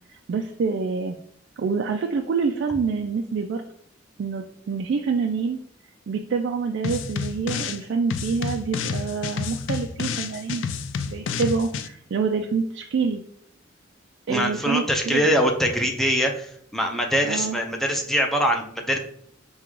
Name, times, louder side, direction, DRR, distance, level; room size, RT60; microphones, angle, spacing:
voice 1, 0.3-1.2 1.6-3.6 4.2-5.6 6.1-10.6 11.1-13.2 14.3-15.3 17.3-17.6, right 5 dB, 65° right, 3 dB, 0.3 m, -26 dB
sound 1, 6.8-7.8 8.1-11.9, left 6 dB, 75° left, 0.3 m, -30 dB
voice 2, 14.3-19.0, equal, ahead, 1 dB, 0.5 m, -23 dB
3.7 x 2.3 x 4.5 m, 0.63 s
head